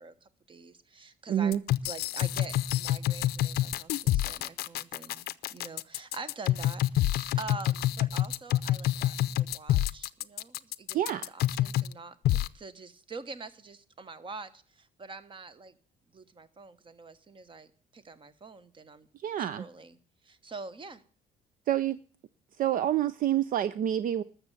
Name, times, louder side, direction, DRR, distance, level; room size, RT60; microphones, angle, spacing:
voice 1, 0.0-1.6 1.8-15.7 16.1-17.7 17.9-19.1 19.4-20.0 20.2-21.0, right 3 dB, 30° right, 13 dB, 1.2 m, -45 dB
voice 2, 1.3-1.6 10.9-11.3 19.2-19.7 21.7-22.0 22.6-24.2, right 11 dB, 55° right, 16 dB, 0.6 m, -27 dB
sound 1, 1.5-11.9 12.3-12.5, left 14 dB, 70° left, 0.6 m, -27 dB
12.5 x 6.8 x 9.1 m, 0.41 s
cardioid pair, 110°, 17 cm